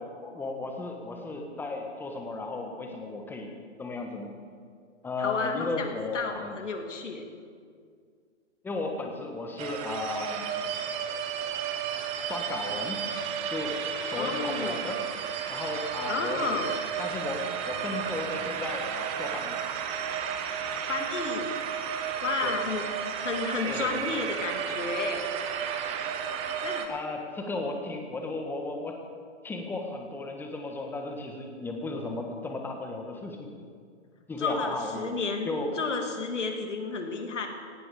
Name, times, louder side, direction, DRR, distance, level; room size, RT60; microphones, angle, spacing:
voice 1, 0.0-3.5 3.8-4.3 5.0-6.5 8.6-10.5 12.3-13.0 13.5-13.8 14.0-15.0 15.5-16.6 17.0-19.6 22.4-22.6 23.7-24.0 26.9-29.0 29.4-33.5 34.3-35.1 35.4-35.7, left 2 dB, 5° left, 3 dB, 1.4 m, -35 dB
voice 2, 5.2-7.2 14.2-14.8 16.1-16.7 20.8-21.6 22.2-25.3 26.6-26.9 34.4-37.5, left 4 dB, 75° left, 4 dB, 2.7 m, -32 dB
sound 1, 9.6-26.9, right 8 dB, 15° right, 0.9 m, -33 dB
18.5 x 15.5 x 5.0 m, 2.1 s
hypercardioid pair, 145°, 36 cm